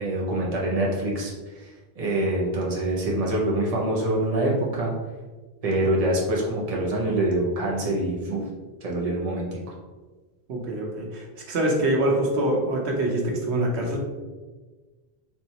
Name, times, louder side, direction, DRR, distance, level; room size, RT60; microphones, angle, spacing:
voice 1, 0.0-4.9 5.6-8.4 8.8-9.6, right 1 dB, 35° right, -3 dB, 0.9 m, -25 dB
voice 2, 10.5-14.0, right 1 dB, 90° right, 0 dB, 1.1 m, -25 dB
4.5 x 3.0 x 2.8 m, 1.3 s
omnidirectional pair, 1.1 m